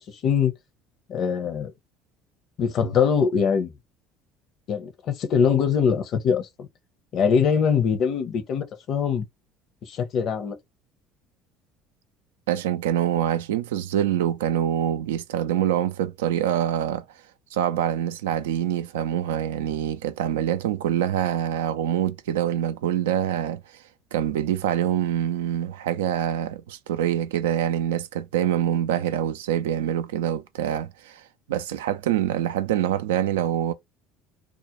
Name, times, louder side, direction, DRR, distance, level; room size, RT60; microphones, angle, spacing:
voice 1, 1.1-1.7 2.6-3.7 4.7-6.7 7.1-9.3 9.8-10.6, left 6 dB, 55° left, 0.7 m, -22 dB
voice 2, 12.5-17.0 17.5-23.6 24.1-31.2 31.5-33.7, right 10 dB, 85° right, 0.3 m, -25 dB
2.4 x 2.1 x 2.9 m
hypercardioid pair, 70°, 0 cm